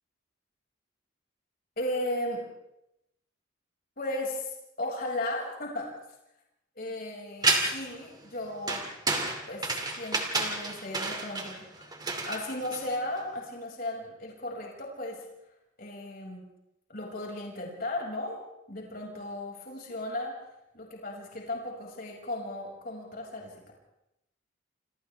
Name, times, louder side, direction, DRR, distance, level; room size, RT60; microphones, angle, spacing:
voice 1, 1.8-2.4 4.0-5.9 6.8-8.8 9.5-15.2 15.8-16.4 16.9-18.4 18.7-20.4 20.7-23.7, left 1 dB, 50° left, -2 dB, 6.0 m, -36 dB
sound 1, 7.4-7.9 8.7-13.2, right 3 dB, 20° right, 2.5 m, -30 dB
28.5 x 26.5 x 3.5 m, 0.87 s
head